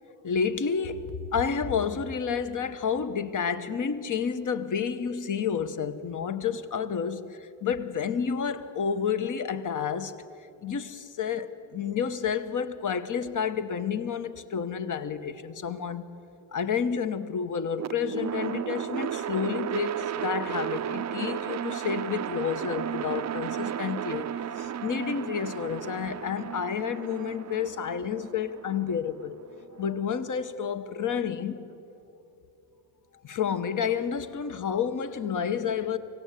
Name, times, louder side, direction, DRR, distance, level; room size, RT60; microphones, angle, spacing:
voice 1, 0.2-10.2 10.6-16.1 16.5-24.3 24.6-29.4 29.8-31.7 33.2-36.0, left 7 dB, 45° left, 1.1 m, -30 dB
sound 1, 17.8-29.9, right 9 dB, 40° right, 0.5 m, -34 dB
25.0 x 17.0 x 8.2 m
cardioid pair, 125°, 44 cm